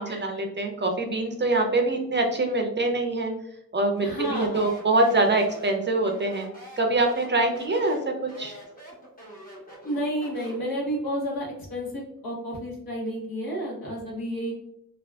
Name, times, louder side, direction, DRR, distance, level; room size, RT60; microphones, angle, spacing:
voice 1, 0.0-3.3 3.7-6.5 6.8-8.6, right 2 dB, 30° right, 3 dB, 0.4 m, -24 dB
Speech, 3.9-10.7, equal, 25° left, 1.0 m, -45 dB
voice 2, 4.0-4.7 9.8-14.5, equal, 75° left, -2 dB, 1.1 m, -31 dB
3.4 x 2.3 x 2.2 m, 0.77 s
wide cardioid pair, 145°, 36 cm